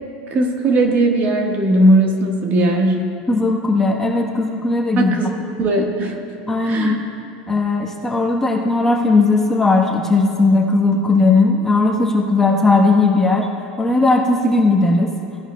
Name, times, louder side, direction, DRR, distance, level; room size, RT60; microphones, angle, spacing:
voice 1, 0.3-3.0 5.0-6.2 6.6-7.0, right 1 dB, 40° right, 2 dB, 1.3 m, -17 dB
voice 2, 3.3-5.1 6.5-7.0 7.5-13.5 13.8-15.1, left 3 dB, 10° left, -1 dB, 1.1 m, -17 dB
16.5 x 10.5 x 2.2 m, 2.6 s
supercardioid pair, 120°, 5 cm